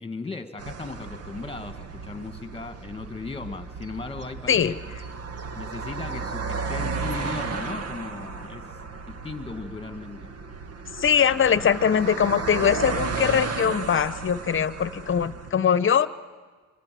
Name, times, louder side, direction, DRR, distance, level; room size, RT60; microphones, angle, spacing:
voice 1, 0.0-5.0 5.6-8.8 9.1-10.3, left 3 dB, 20° left, 8 dB, 2.1 m, -37 dB
sound 1, 0.6-15.5, right 4 dB, 55° right, 1.6 m, -34 dB
voice 2, 11.0-16.1, left 8 dB, 40° left, 15 dB, 1.1 m, -22 dB
26.0 x 24.5 x 7.9 m, 1.4 s
cardioid pair, 90°, 30 cm